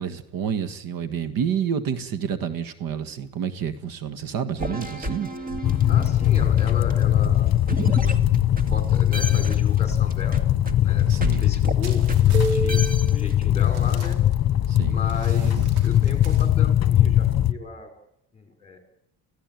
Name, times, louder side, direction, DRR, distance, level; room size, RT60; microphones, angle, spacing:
voice 1, 0.0-5.3 11.1-11.5 14.7-15.0 15.6-15.7, right 8 dB, 65° right, 11 dB, 1.8 m, -29 dB
sound 1, 4.6-8.8 9.1-13.5, right 1 dB, 20° right, 2.1 m, -30 dB
sound 2, 5.6-17.5, left 12 dB, 45° left, 1.3 m, -20 dB
voice 2, 5.9-8.2 8.5-10.4 10.8-11.1 11.4-14.2 14.9-17.9 18.3-18.8, left 4 dB, 15° left, 6 dB, 5.3 m, -36 dB
sound 3, 11.8-12.7 13.2-13.3 13.6-14.7 15.1-16.5, right 5 dB, 85° right, 4.3 m, -45 dB
29.0 x 16.0 x 9.3 m, 0.82 s
cardioid pair, 130°, 38 cm